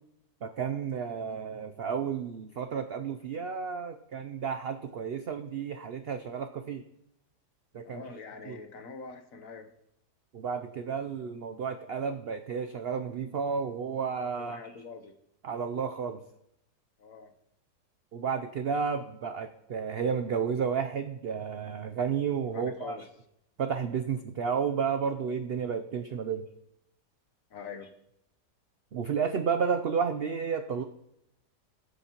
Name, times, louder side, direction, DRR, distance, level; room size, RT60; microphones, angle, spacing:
voice 1, 0.4-6.8 7.7-8.0 8.5-8.6 10.3-14.7 15.4-16.2 18.1-23.0 23.6-26.4 28.9-30.8, right 6 dB, 80° right, 8 dB, 0.5 m, -32 dB
voice 2, 7.8-9.7 14.4-15.1 17.0-17.3 22.5-23.1 27.5-27.9, left 5 dB, 60° left, 8 dB, 1.2 m, -44 dB
20.0 x 8.2 x 2.9 m, 0.81 s
omnidirectional pair, 1.7 m